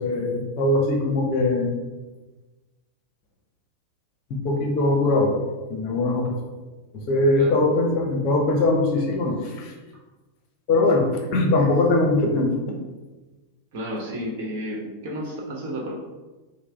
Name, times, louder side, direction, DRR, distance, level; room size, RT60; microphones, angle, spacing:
voice 1, 0.0-1.8 4.3-5.3 5.7-6.3 6.9-9.7 10.7-12.7, left 2 dB, 40° left, 2 dB, 0.7 m, -21 dB
voice 2, 13.7-16.0, equal, 50° right, -1 dB, 1.1 m, -32 dB
5.8 x 2.1 x 3.4 m, 1.2 s
figure-of-eight pair, 90°, 0 cm